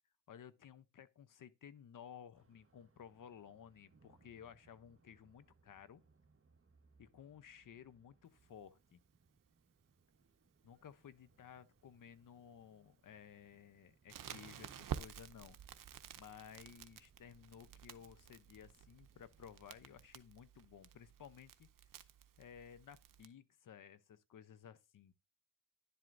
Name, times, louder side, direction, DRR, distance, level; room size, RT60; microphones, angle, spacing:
voice 1, 0.3-6.0 7.0-9.0 10.6-15.6 16.1-21.7 22.4-25.1, left 8 dB, 65° left, 0.8 m, -56 dB
sound 1, 2.3-20.1, right 4 dB, 40° right, 1.4 m, -73 dB
Crackle, 14.1-23.3, right 9 dB, 70° right, 0.7 m, -51 dB
10.5 x 7.7 x 2.6 m
cardioid pair, 75°, 34 cm